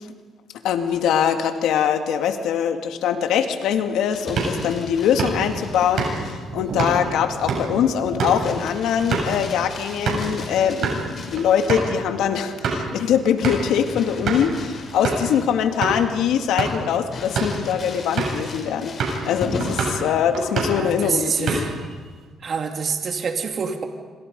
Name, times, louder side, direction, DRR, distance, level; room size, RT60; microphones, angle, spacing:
voice 1, 0.6-18.9 19.2-21.7, left 8 dB, 85° left, 6 dB, 2.1 m, -22 dB
Crumpling crinkling, 3.9-6.5 8.4-11.9 13.4-15.7 16.2-16.3 17.1-20.0 21.5-21.9, left 3 dB, 50° left, 6.0 m, -37 dB
sound 1, 4.3-10.3 10.7-11.0 11.4-11.5 11.7-11.9 12.4-12.9 13.4-13.7 14.3-14.5 15.0-15.3 15.8-16.0 16.4-16.9 17.2-17.6 18.2-18.5 19.0-19.3 19.6-20.0 20.3-20.9 21.2-21.9, right 4 dB, 70° right, 7.4 m, -26 dB
voice 2, 20.8-21.8 22.4-23.8, right 6 dB, 50° right, 4 dB, 2.6 m, -26 dB
27.0 x 26.5 x 5.4 m, 1.5 s
cardioid pair, 90°, 0 cm